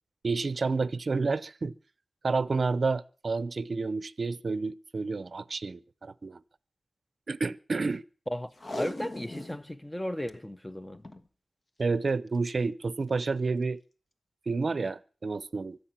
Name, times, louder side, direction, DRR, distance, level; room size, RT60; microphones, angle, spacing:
voice 1, 0.2-1.7 2.2-6.4 7.3-8.0 11.8-13.8 14.5-15.8, right 4 dB, 55° right, 0.7 m, -30 dB
voice 2, 8.3-11.1, equal, 10° left, 1.0 m, -35 dB
Packing tape duct tape, 8.5-9.6 10.0-10.1 10.3-10.4 10.9-11.3 12.3-12.5 13.1-13.2, left 1 dB, 35° left, 1.3 m, -38 dB
24.0 x 8.1 x 6.0 m
wide cardioid pair, 95°, 0 cm